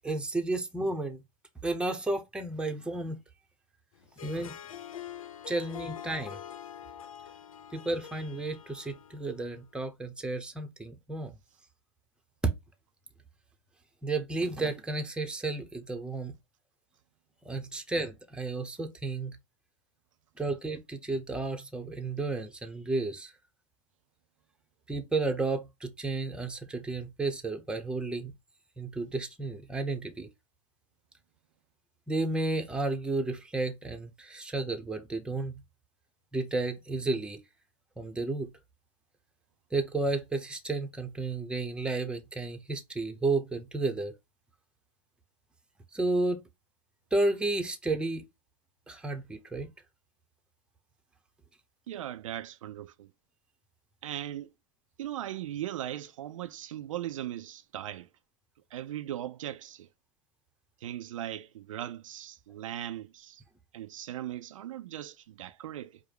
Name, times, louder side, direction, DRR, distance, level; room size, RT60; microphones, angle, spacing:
voice 1, 0.0-1.2 1.6-3.2 4.2-4.6 5.5-6.4 7.7-11.3 14.0-16.3 17.5-19.4 20.4-23.3 24.9-28.3 28.8-30.3 32.1-35.6 36.3-37.4 38.0-38.5 39.7-44.1 45.9-46.4 47.1-48.2 48.9-49.7, right 2 dB, 5° right, 0.8 m, -32 dB
Harp, 4.0-9.5, left 10 dB, 80° left, 0.5 m, -45 dB
voice 2, 51.9-53.1 54.0-54.5 55.0-58.1 58.7-59.9 60.8-63.4 63.7-66.0, right 12 dB, 70° right, 0.4 m, -38 dB
4.8 x 2.1 x 4.6 m
hypercardioid pair, 105°, 17 cm